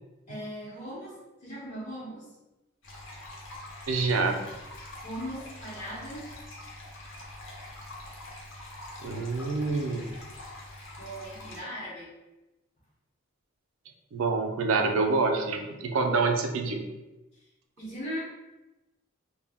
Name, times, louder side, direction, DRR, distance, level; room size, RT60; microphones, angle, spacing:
voice 1, 0.3-2.2 5.0-6.3 11.0-12.1 17.8-18.2, equal, 30° left, -10 dB, 0.7 m, -38 dB
sound 1, 2.8-11.6, left 1 dB, 70° left, 0.6 m, -44 dB
voice 2, 3.9-4.4 9.0-10.1 14.1-16.8, right 3 dB, 80° right, 4 dB, 0.4 m, -26 dB
2.1 x 2.1 x 3.3 m, 1.0 s
head